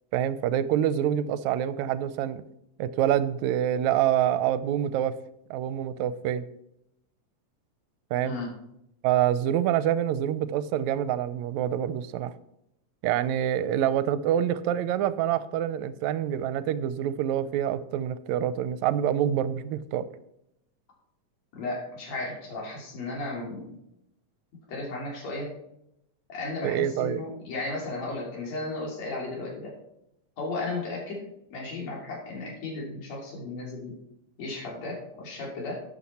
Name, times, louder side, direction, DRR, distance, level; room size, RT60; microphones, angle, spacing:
voice 1, 0.1-2.4 2.8-5.2 5.5-6.5 8.1-8.4 9.0-12.3 13.0-20.1 26.6-27.2, right 10 dB, 80° right, 15 dB, 1.8 m, -26 dB
voice 2, 21.6-23.8 24.7-25.5 26.3-29.7 30.4-31.2 31.5-34.0 34.4-35.8, left 2 dB, 65° left, -2 dB, 3.9 m, -34 dB
11.5 x 7.7 x 4.2 m, 0.80 s
omnidirectional pair, 3.4 m